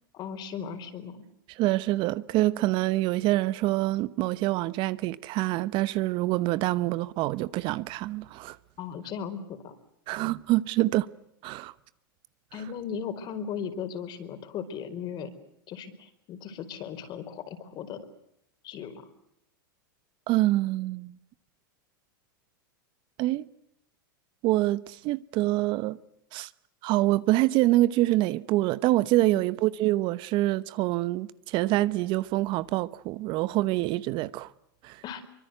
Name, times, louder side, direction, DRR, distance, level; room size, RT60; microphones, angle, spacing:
voice 1, 0.1-1.2 8.8-9.8 12.5-15.3 15.7-18.1 18.6-19.1 29.2-29.4 35.0-35.2, left 7 dB, 40° left, 4.6 m, -37 dB
voice 2, 1.6-8.6 10.1-11.1 11.4-11.7 20.3-21.2 23.2-23.5 24.4-26.0 26.3-26.5 26.8-34.5 34.8-35.0, right 17 dB, 45° right, 1.0 m, -26 dB
24.5 x 24.0 x 8.0 m
hypercardioid pair, 120°, 11 cm